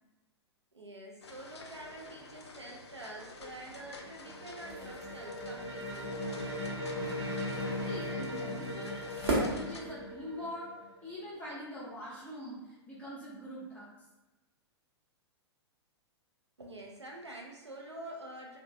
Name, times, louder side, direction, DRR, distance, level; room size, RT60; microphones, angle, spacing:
voice 1, 0.7-6.1 16.6-18.6, right 1 dB, 85° right, -1 dB, 0.5 m, -47 dB
sound 1, 1.2-9.8, left 3 dB, 75° left, 0.4 m, -50 dB
sound 2, 3.9-11.4, left 1 dB, 35° right, 0.8 m, -39 dB
sound 3, 4.5-10.5, right 1 dB, 60° right, 0.9 m, -39 dB
voice 2, 7.4-9.1 9.5-10.7 11.0-13.9, equal, 10° left, -7 dB, 0.6 m, -43 dB
2.9 x 2.1 x 2.5 m, 1.0 s
figure-of-eight pair, 105°, 14 cm